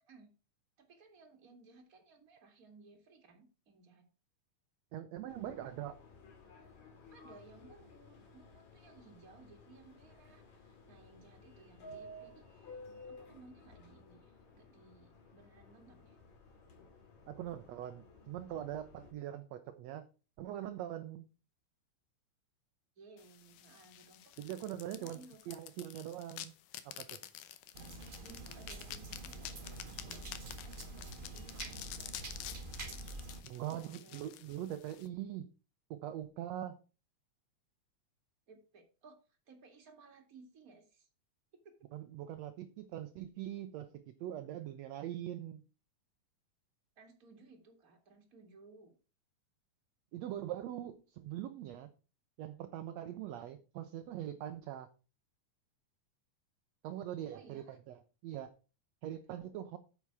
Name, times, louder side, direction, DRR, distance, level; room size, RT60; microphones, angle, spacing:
voice 1, 0.8-4.1 7.1-12.8 13.0-16.2 23.0-24.3 24.9-25.5 27.8-27.9 28.2-33.0 33.5-34.3 38.5-41.1 41.5-41.7 47.0-48.9 57.3-57.8 59.3-59.5, right 3 dB, 30° right, 2.2 m, -60 dB
voice 2, 4.9-6.0 17.3-20.1 20.4-21.3 24.4-25.2 25.5-26.5 26.8-27.2 33.4-35.5 35.9-36.8 41.9-45.6 50.1-51.9 52.4-54.9 56.8-58.5 59.0-59.8, right 12 dB, 75° right, 1.7 m, -42 dB
Subway metro underground, 5.3-19.1, left 2 dB, 65° left, 3.6 m, -56 dB
sound 1, 23.2-35.1, left 12 dB, 85° left, 2.4 m, -49 dB
sound 2, 27.7-33.4, right 2 dB, 55° right, 0.5 m, -46 dB
8.8 x 7.5 x 4.8 m
omnidirectional pair, 3.6 m